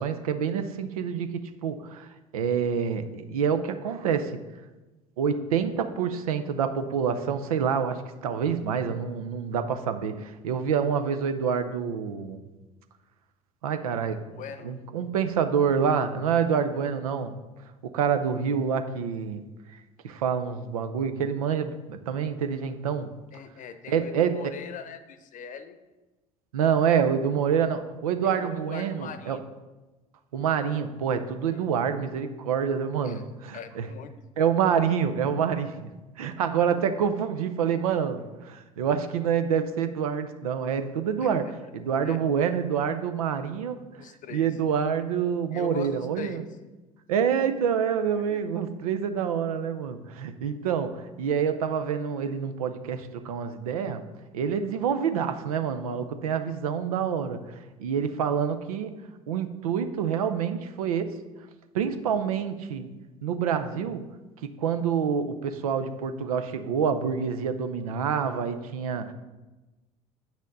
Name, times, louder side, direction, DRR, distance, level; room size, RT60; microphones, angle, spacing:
voice 1, 0.0-4.4 5.2-12.4 13.6-14.2 14.6-17.4 17.8-19.4 20.0-23.1 23.9-24.5 26.5-29.4 30.3-33.9 34.4-35.9 36.2-43.8 44.3-46.4 47.1-54.0 54.3-57.4 57.8-58.9 59.3-61.1 61.7-62.9 63.2-64.0 64.4-69.1, right 7 dB, 80° right, 9 dB, 0.6 m, -27 dB
voice 2, 14.3-14.7 23.3-25.8 28.2-29.4 31.5-31.6 33.0-33.2 33.5-34.1 41.2-41.4 42.0-42.2 44.0-44.6 45.5-46.4 48.2-48.4, left 7 dB, 45° left, 11 dB, 0.7 m, -41 dB
8.5 x 6.3 x 4.0 m, 1.1 s
hypercardioid pair, 65°, 18 cm